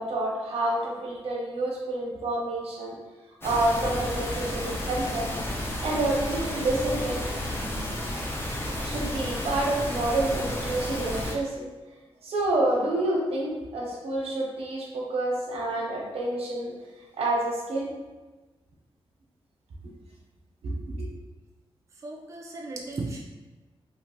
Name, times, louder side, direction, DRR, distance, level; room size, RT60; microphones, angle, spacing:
voice 1, 0.0-2.9 3.4-5.3 5.8-7.2 8.8-11.6 12.2-16.7 17.2-17.9 20.6-21.1, right 2 dB, 85° right, -2 dB, 0.9 m, -28 dB
sound 1, 3.4-11.3, left 1 dB, 25° left, 0.5 m, -32 dB
voice 2, 22.0-23.2, right 3 dB, 30° right, -1 dB, 0.3 m, -35 dB
3.1 x 2.7 x 2.8 m, 1.2 s
wide cardioid pair, 160°, 10 cm